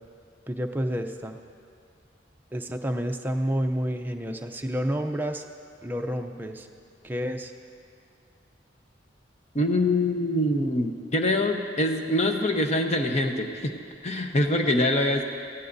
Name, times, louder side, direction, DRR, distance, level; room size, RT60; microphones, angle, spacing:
voice 1, 0.5-1.4 2.5-5.4 5.8-6.7 7.0-7.5, equal, 10° right, 3 dB, 0.5 m, -29 dB
voice 2, 9.5-13.7 14.0-15.3, left 1 dB, 35° left, 4 dB, 0.9 m, -24 dB
18.0 x 15.0 x 2.7 m, 2.3 s
head